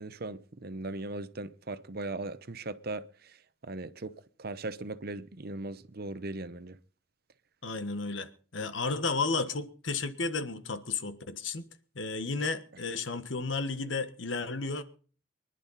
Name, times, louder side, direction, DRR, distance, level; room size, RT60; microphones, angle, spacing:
voice 1, 0.0-3.0 3.6-4.1 4.4-6.8, right 2 dB, 55° right, 1.0 m, -38 dB
voice 2, 7.6-11.6 11.9-14.8, left 4 dB, 75° left, 1.4 m, -33 dB
24.5 x 11.0 x 4.1 m
head